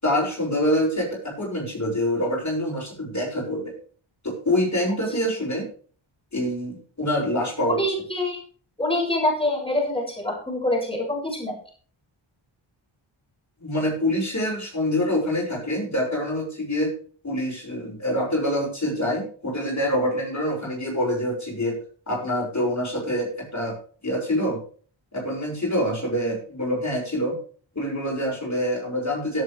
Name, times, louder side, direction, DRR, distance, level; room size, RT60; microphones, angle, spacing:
voice 1, 0.0-3.7 4.2-5.6 6.3-7.8 13.6-16.9 17.2-21.8 22.1-23.8 24.0-24.6 25.1-27.4 27.7-29.4, equal, 35° left, -2 dB, 6.7 m, -25 dB
voice 2, 7.7-8.4 8.8-11.6, left 1 dB, 10° left, -2 dB, 7.1 m, -25 dB
17.0 x 8.5 x 3.5 m, 0.42 s
cardioid pair, 60°, 49 cm